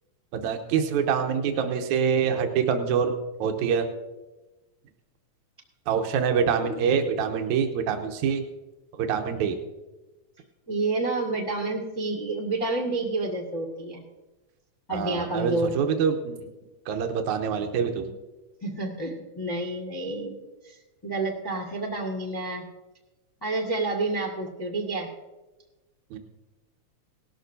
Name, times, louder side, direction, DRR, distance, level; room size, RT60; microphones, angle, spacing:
voice 1, 0.3-3.9 5.9-8.4 9.0-9.6 14.9-16.5 16.9-18.1 26.1-26.2, right 7 dB, 85° right, 5 dB, 2.3 m, -25 dB
voice 2, 10.7-14.0 14.9-15.8 18.6-20.4 20.6-22.6 23.4-25.1, right 2 dB, 15° left, 0 dB, 0.7 m, -29 dB
18.0 x 13.0 x 2.7 m, 1.1 s
omnidirectional pair, 3.4 m